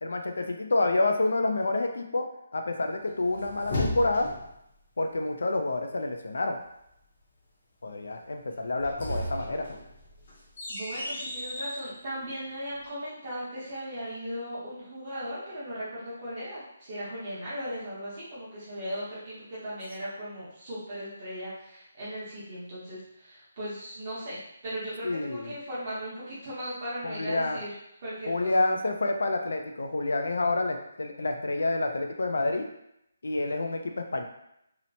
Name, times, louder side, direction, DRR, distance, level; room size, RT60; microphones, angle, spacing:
voice 1, 0.0-2.3 2.5-4.3 5.0-6.6 7.8-9.7 25.0-25.5 27.0-27.6 28.3-32.7 33.2-34.2, left 2 dB, 75° left, 4 dB, 0.4 m, -28 dB
sound 1, 3.1-4.6 8.6-11.9, left 1 dB, 40° left, 0.7 m, -35 dB
voice 2, 10.7-27.7 28.0-28.7, equal, 30° right, -10 dB, 0.9 m, -37 dB
2.8 x 2.0 x 2.7 m, 0.80 s
hypercardioid pair, 175°, 0 cm